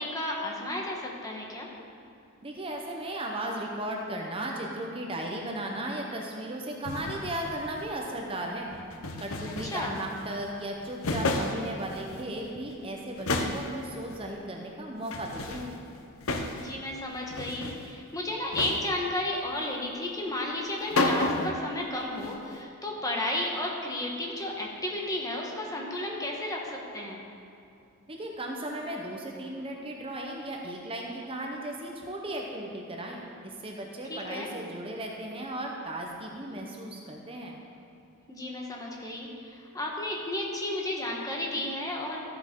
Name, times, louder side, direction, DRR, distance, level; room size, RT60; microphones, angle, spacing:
voice 1, 0.0-1.7 9.5-9.9 16.6-27.2 34.1-34.5 38.3-42.2, left 1 dB, 15° left, -1 dB, 1.2 m, -33 dB
voice 2, 2.4-8.7 9.2-15.7 28.1-37.6, right 1 dB, 25° right, 0 dB, 0.8 m, -36 dB
sound 1, 6.9-8.0 8.7-10.5 10.8-12.4 12.7-12.8 13.2-14.2 15.1-16.9 17.1-17.9 18.5-19.1 20.6-20.7 20.9-21.7 22.0-22.6, left 2 dB, 70° left, 0.8 m, -32 dB
13.5 x 7.9 x 3.7 m, 2.5 s
head